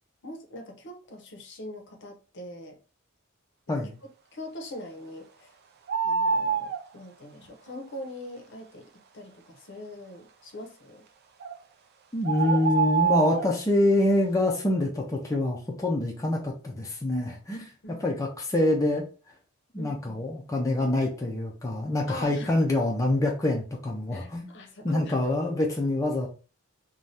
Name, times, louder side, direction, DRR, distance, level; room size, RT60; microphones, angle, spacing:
voice 1, 0.2-2.8 3.7-3.8 4.3-5.6 6.0-11.0 12.4-12.6 17.8-18.0 19.8-20.2 22.1-22.5 24.1-25.3, left 1 dB, 55° left, 0.7 m, -42 dB
sound 1, 5.9-6.8 11.4-11.5 12.2-13.5, right 6 dB, 50° right, 0.4 m, -25 dB
voice 2, 12.1-17.7 18.0-19.0 19.7-24.5 24.8-26.3, left 1 dB, 15° left, 0.5 m, -26 dB
2.6 x 2.3 x 3.2 m
head